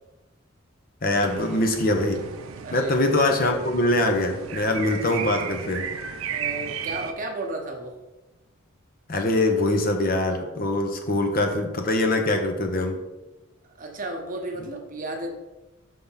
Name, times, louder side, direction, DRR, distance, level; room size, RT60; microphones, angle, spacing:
voice 1, 1.0-2.2 2.7-5.9 9.1-13.0, left 2 dB, 45° left, 4 dB, 0.7 m, -23 dB
sound 1, 1.1-7.1, right 7 dB, 85° right, 0.5 m, -35 dB
voice 2, 2.6-2.9 6.3-7.9 13.7-15.3, right 2 dB, 40° right, 2 dB, 0.9 m, -33 dB
5.5 x 3.5 x 5.6 m, 1.1 s
head